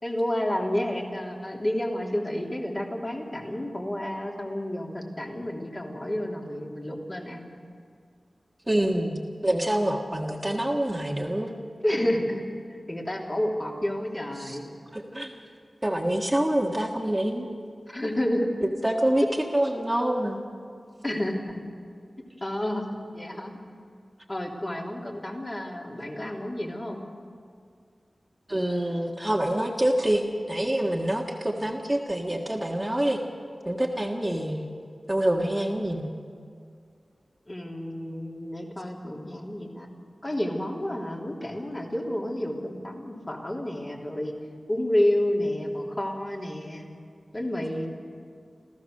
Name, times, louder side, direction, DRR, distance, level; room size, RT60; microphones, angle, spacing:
voice 1, 0.0-7.6 11.8-12.4 12.9-14.6 17.9-18.5 21.0-21.4 22.4-23.5 24.3-27.0 37.5-39.9 40.2-44.3 44.7-46.9 47.3-47.9, left 1 dB, 30° left, -1 dB, 3.1 m, -30 dB
voice 2, 8.7-11.5 14.4-14.6 14.9-15.3 15.8-17.5 18.6-19.2 19.5-20.4 28.5-33.2 33.6-34.7 35.1-36.1, right 1 dB, 15° right, 0 dB, 1.6 m, -26 dB
27.5 x 14.5 x 6.6 m, 2.2 s
wide cardioid pair, 80°, 0 cm